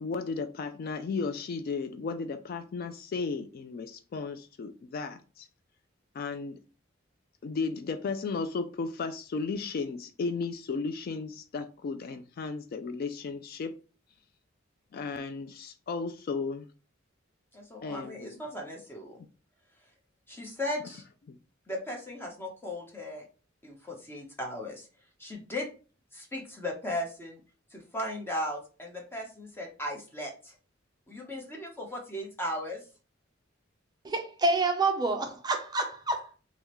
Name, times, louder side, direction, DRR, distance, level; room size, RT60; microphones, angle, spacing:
voice 1, 0.0-5.5 6.1-6.6 7.4-13.7 14.9-16.7 17.8-18.4 21.3-21.4, left 4 dB, 50° left, 0.3 m, -34 dB
voice 2, 17.5-19.2 20.3-21.0 21.7-23.2 23.6-24.9 25.2-25.7 26.1-27.4 27.7-30.5 31.1-32.8, left 1 dB, 10° left, 0.9 m, -37 dB
voice 3, 34.0-36.3, right 2 dB, 20° right, 0.5 m, -28 dB
3.5 x 3.1 x 3.0 m
head